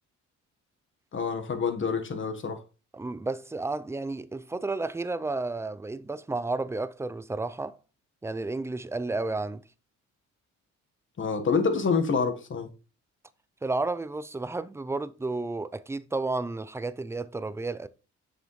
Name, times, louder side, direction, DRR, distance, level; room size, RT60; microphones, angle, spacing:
voice 1, 1.1-2.6 11.2-12.7, left 5 dB, 40° left, 1.3 m, -27 dB
voice 2, 2.9-7.8 8.2-9.6 13.6-17.9, right 3 dB, 10° right, 0.4 m, -32 dB
6.8 x 6.4 x 3.1 m
cardioid pair, 90°, 30 cm